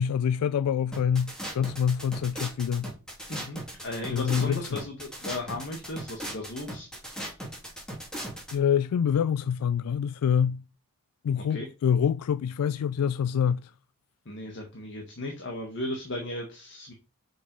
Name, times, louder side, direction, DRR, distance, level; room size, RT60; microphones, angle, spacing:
voice 1, 0.0-2.9 4.1-4.7 8.5-10.6 11.2-13.7, left 8 dB, 85° left, 0.3 m, -26 dB
sound 1, 0.9-8.5, right 1 dB, 5° left, 2.5 m, -38 dB
voice 2, 3.3-6.9 11.3-11.7 14.2-16.9, left 1 dB, 55° left, 1.6 m, -36 dB
6.2 x 6.0 x 5.4 m
head